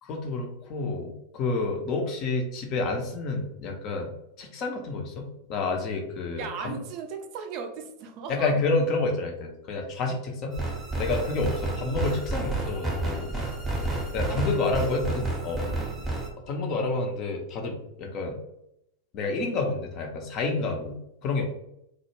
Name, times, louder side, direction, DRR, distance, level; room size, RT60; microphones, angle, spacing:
voice 1, 0.0-4.1 4.4-6.7 8.3-10.6 11.0-13.4 14.1-15.7 16.5-18.4 19.1-21.4, left 3 dB, 35° left, 2 dB, 0.5 m, -29 dB
voice 2, 6.4-8.6 14.3-14.5 15.7-16.1 20.6-20.8, right 5 dB, 40° right, 4 dB, 0.4 m, -37 dB
sound 1, 10.5-16.3, right 2 dB, 10° right, 0.7 m, -30 dB
2.1 x 2.0 x 3.0 m, 0.80 s
figure-of-eight pair, 90°, 0 cm